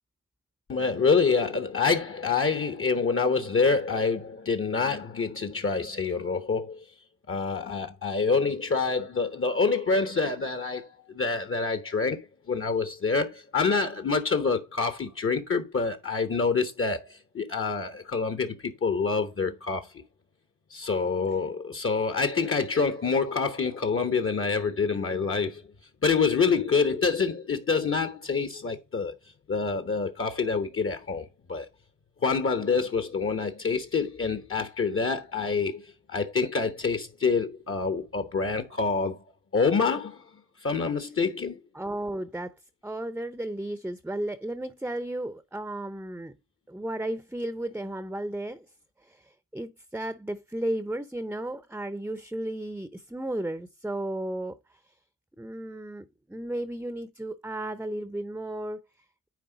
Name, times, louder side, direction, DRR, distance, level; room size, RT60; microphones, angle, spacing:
voice 1, 0.7-6.9 7.3-20.0 20.7-25.6 26.0-29.1 29.5-31.7 32.2-39.2 39.5-40.2 40.6-41.6, left 4 dB, 40° left, 1.0 m, -27 dB
voice 2, 41.7-42.5 42.8-46.3 46.7-48.7 49.0-54.8 55.4-58.8, right 1 dB, 5° right, 0.7 m, -34 dB
9.6 x 4.2 x 3.9 m
cardioid pair, 75°, 34 cm